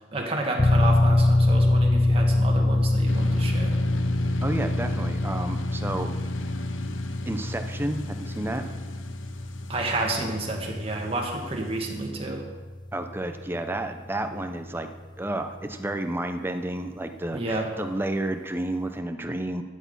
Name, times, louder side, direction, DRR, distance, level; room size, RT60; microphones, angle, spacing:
voice 1, 0.1-3.8 9.7-12.4 17.3-17.7, right 2 dB, 30° right, 0 dB, 1.9 m, -30 dB
sound 1, 0.6-15.0, left 2 dB, 25° left, 0.5 m, -25 dB
sound 2, 3.1-12.1, left 1 dB, 80° left, 0.8 m, -37 dB
voice 2, 4.4-6.1 6.5-6.6 7.3-8.7 12.9-14.9 15.2-19.6, right 1 dB, 10° right, 6 dB, 0.7 m, -31 dB
13.0 x 8.5 x 5.5 m, 1.3 s
head